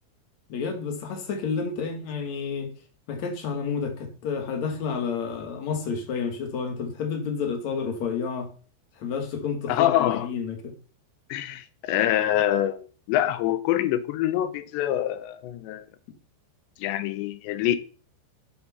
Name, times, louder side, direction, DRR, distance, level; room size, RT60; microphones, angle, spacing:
voice 1, 0.5-2.7 3.1-8.5 9.0-10.7, left 5 dB, 55° left, 2.3 m, -30 dB
voice 2, 9.7-10.3 11.3-15.9 16.8-17.8, left 12 dB, 85° left, 3.1 m, -25 dB
8.6 x 7.5 x 5.5 m
omnidirectional pair, 5.0 m